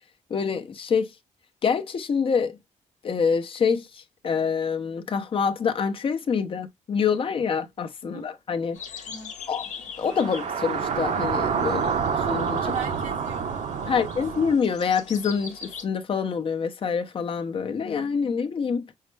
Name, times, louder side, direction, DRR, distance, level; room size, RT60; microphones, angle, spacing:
voice 1, 0.3-1.1 1.6-2.6 3.0-8.8 9.5-9.7 10.0-11.8 12.3-12.6 13.9-18.8, left 6 dB, 45° left, 0.7 m, -26 dB
sound 1, 8.7-15.8, left 6 dB, 70° left, 1.1 m, -42 dB
sound 2, 10.1-14.6, right 6 dB, 65° right, 0.8 m, -27 dB
voice 2, 11.6-12.2 12.5-14.1, right 6 dB, 90° right, 1.2 m, -39 dB
5.6 x 2.1 x 3.2 m
cardioid pair, 110°, 13 cm